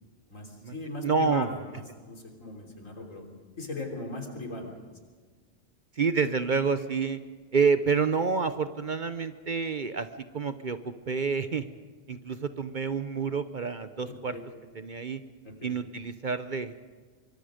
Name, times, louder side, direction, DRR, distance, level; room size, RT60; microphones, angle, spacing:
voice 1, 0.3-3.3 3.6-4.7 14.1-14.5 15.4-15.8, left 2 dB, 85° left, 2 dB, 3.8 m, -39 dB
voice 2, 1.0-1.5 6.0-7.2 7.5-10.1 10.3-11.7 12.1-14.4 14.8-15.2 15.6-16.7, right 5 dB, 45° right, 11 dB, 0.8 m, -28 dB
25.0 x 23.5 x 5.1 m, 1.5 s
omnidirectional pair, 1.3 m